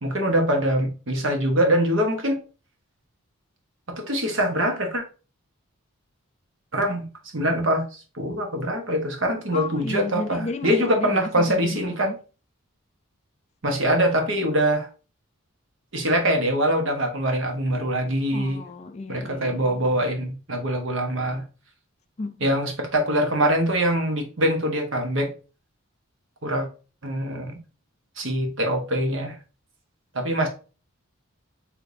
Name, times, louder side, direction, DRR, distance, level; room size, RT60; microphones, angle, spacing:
voice 1, 0.0-2.4 3.9-5.0 6.7-7.1 7.3-12.1 13.6-14.9 15.9-18.6 19.1-21.4 22.4-25.3 26.4-26.7 27.0-27.5 28.2-29.3 30.1-30.5, right 1 dB, 60° right, 1.1 m, -23 dB
voice 2, 9.5-12.2 18.3-20.0 22.2-22.5, left 3 dB, 30° left, 0.3 m, -34 dB
5.0 x 3.3 x 2.6 m
head